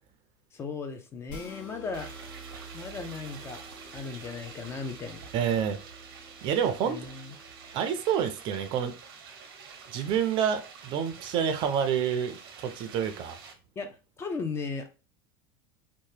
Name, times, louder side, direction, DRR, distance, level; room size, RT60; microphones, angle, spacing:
voice 1, 0.5-2.1 2.7-3.6 3.9-5.3 6.9-7.3 13.8-13.9 14.2-14.9, left 4 dB, 20° left, 0.4 m, -36 dB
sound 1, 1.3-7.8, right 1 dB, 55° left, 1.3 m, -49 dB
sound 2, 1.9-13.5, right 5 dB, 90° right, 0.7 m, -48 dB
voice 2, 5.3-5.8 6.4-7.0 7.7-8.9 9.9-13.4, right 8 dB, 40° right, 0.4 m, -28 dB
2.8 x 2.1 x 3.2 m
supercardioid pair, 145°, 12 cm